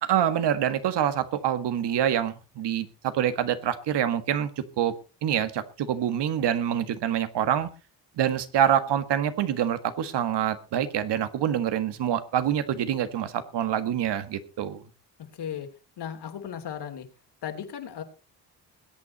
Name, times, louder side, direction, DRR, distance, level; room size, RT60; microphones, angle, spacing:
voice 1, 0.0-4.9 5.2-7.7 8.2-14.8, right 10 dB, 75° right, 12 dB, 1.7 m, -26 dB
voice 2, 16.0-17.1 17.4-18.0, left 9 dB, 70° left, 5 dB, 3.2 m, -35 dB
21.0 x 8.9 x 4.2 m, 0.33 s
cardioid pair, 80°, 42 cm